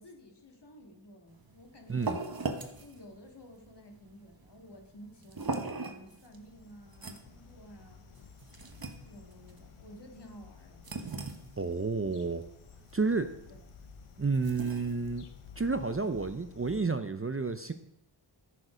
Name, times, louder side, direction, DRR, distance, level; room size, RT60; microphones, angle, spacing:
voice 1, 0.0-2.5 2.8-8.0 9.0-10.8 13.5-13.6, equal, 55° left, 3 dB, 2.1 m, -53 dB
sound 1, 1.3-16.3, right 3 dB, 45° right, 1.2 m, -42 dB
sound 2, 6.0-16.8, left 8 dB, 85° left, 0.9 m, -54 dB
voice 2, 11.6-12.4 12.9-13.3 14.2-15.2 15.6-17.7, right 4 dB, 25° right, 9 dB, 0.6 m, -30 dB
13.5 x 6.7 x 5.0 m, 0.81 s
wide cardioid pair, 65°, 50 cm